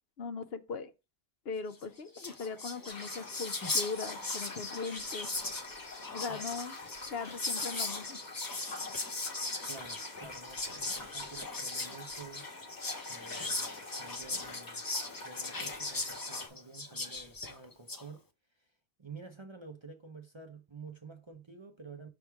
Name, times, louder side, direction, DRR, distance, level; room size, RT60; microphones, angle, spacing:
voice 1, 0.2-0.9 1.5-5.3 6.1-6.7 7.1-8.2, left 5 dB, 70° left, 0.9 m, -39 dB
Whispering, 1.8-1.9 2.1-18.0, left 3 dB, 25° left, 0.6 m, -38 dB
sound 1, 2.9-16.5, left 2 dB, 45° left, 1.3 m, -46 dB
voice 2, 9.6-12.5 13.1-13.7 14.0-14.8 15.2-18.2 18.6-18.7 19.0-22.1, right 4 dB, 30° right, 0.7 m, -50 dB
5.7 x 3.5 x 4.6 m
omnidirectional pair, 1.1 m